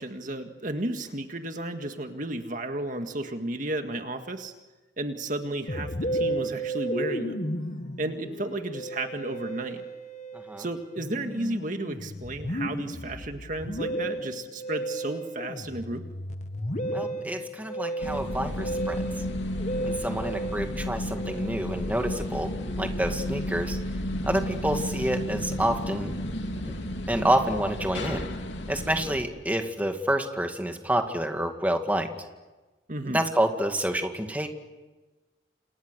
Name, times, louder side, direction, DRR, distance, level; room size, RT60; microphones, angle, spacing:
voice 1, 0.0-4.5 5.0-7.5 8.0-9.8 10.6-16.0 32.9-33.2, right 1 dB, 45° right, 6 dB, 1.8 m, -33 dB
Musical instrument, 5.7-23.3, right 1 dB, 40° left, 1.5 m, -34 dB
voice 2, 10.3-10.7 16.9-19.0 19.8-22.5 22.8-23.8 24.2-26.1 26.6-26.7 27.1-28.3 28.7-32.1 33.1-34.5, right 1 dB, 10° right, 5 dB, 2.2 m, -28 dB
sound 1, 18.0-29.2, left 1 dB, 80° left, 3.1 m, -32 dB
29.5 x 29.0 x 6.7 m, 1.2 s
head